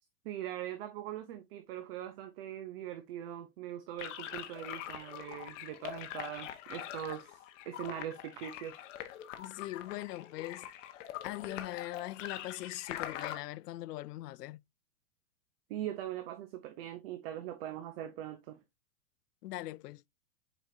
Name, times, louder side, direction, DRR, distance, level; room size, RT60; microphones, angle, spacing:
voice 1, 0.2-8.8 15.7-18.6, right 11 dB, 40° right, 0.7 m, -41 dB
sound 1, 4.0-13.4, left 11 dB, 50° left, 1.3 m, -43 dB
voice 2, 9.4-10.7 11.2-14.6 19.4-20.1, left 16 dB, 85° left, 0.5 m, -41 dB
7.5 x 5.0 x 2.7 m
supercardioid pair, 155°, 46 cm